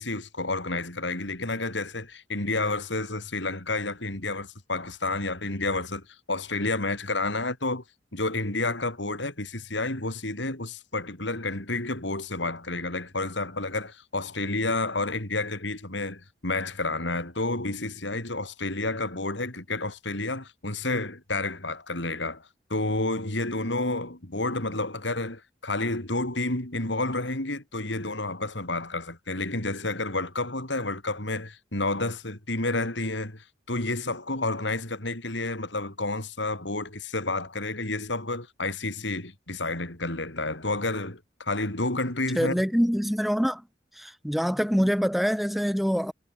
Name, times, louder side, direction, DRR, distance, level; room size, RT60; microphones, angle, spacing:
voice 1, 0.0-7.8 8.1-42.6, left 2 dB, 80° left, 4.9 m, -30 dB
voice 2, 42.3-43.6 43.9-46.1, equal, ahead, 3.2 m, -25 dB
head